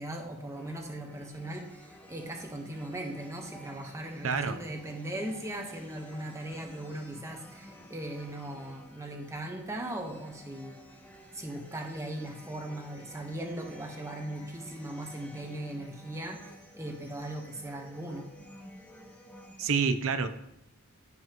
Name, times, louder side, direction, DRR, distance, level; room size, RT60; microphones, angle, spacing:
voice 1, 0.0-10.8 11.3-18.3, right 1 dB, 15° right, 2 dB, 1.2 m, -39 dB
sound 1, 0.5-19.7, equal, 5° left, 0.9 m, -51 dB
voice 2, 4.2-4.6 19.6-20.3, right 5 dB, 65° right, 10 dB, 0.7 m, -27 dB
14.5 x 5.6 x 3.0 m, 0.84 s
head